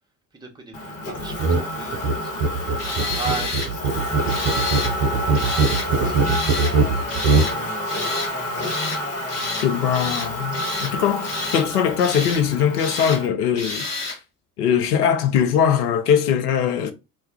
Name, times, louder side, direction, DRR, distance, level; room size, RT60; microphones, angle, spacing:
voice 1, 0.3-3.5 4.2-7.4, right 3 dB, 10° right, 0.8 m, -37 dB
Motor vehicle (road), 0.7-13.3, left 1 dB, 55° left, 1.1 m, -29 dB
sound 1, 1.4-1.7 1.9-7.5, right 3 dB, 50° right, 0.6 m, -21 dB
Tools, 2.8-3.7 4.3-4.9 5.3-5.9 6.2-6.7 7.1-7.6 7.9-8.3 8.6-9.0 9.3-9.7 9.9-10.9 11.2-11.7 12.0-12.4 12.8-13.2 13.6-14.2, left 3 dB, 30° left, 1.2 m, -29 dB
voice 2, 9.6-13.9 14.6-16.9, left 8 dB, 70° left, 0.6 m, -21 dB
2.3 x 2.2 x 3.5 m
figure-of-eight pair, 60°, 47 cm